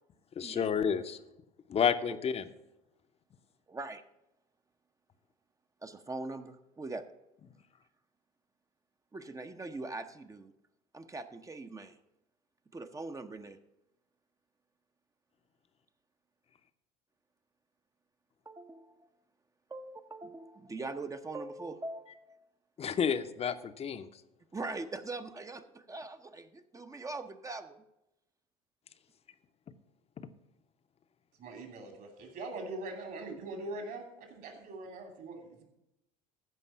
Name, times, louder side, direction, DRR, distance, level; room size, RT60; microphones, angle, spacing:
voice 1, 0.4-1.2 1.7-2.4 22.8-24.1, left 7 dB, 35° left, 11 dB, 0.8 m, -30 dB
voice 2, 3.7-4.0 5.8-7.0 9.1-10.5 10.9-12.0 12.7-13.6 18.5-19.1 19.7-22.5 24.5-27.8, right 3 dB, 20° right, 8 dB, 0.7 m, -42 dB
voice 3, 31.4-35.6, right 2 dB, 55° right, 4 dB, 2.8 m, -42 dB
14.5 x 5.3 x 5.6 m, 0.91 s
hypercardioid pair, 70°, 18 cm